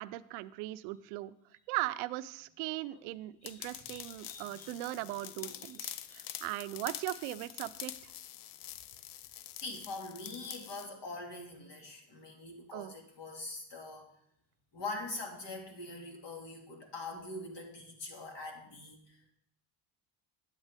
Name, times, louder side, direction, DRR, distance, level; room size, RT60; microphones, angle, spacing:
voice 1, 0.0-1.3 1.7-8.1 12.7-12.9, right 17 dB, 85° right, 14 dB, 0.6 m, -39 dB
sound 1, 3.4-10.9, left 13 dB, 80° left, 0.6 m, -46 dB
voice 2, 3.4-4.7 5.4-5.7 6.1-6.2 9.5-14.1 14.7-19.3, left 2 dB, 55° left, 2 dB, 2.3 m, -44 dB
9.1 x 8.2 x 3.5 m, 0.71 s
supercardioid pair, 85°, 49 cm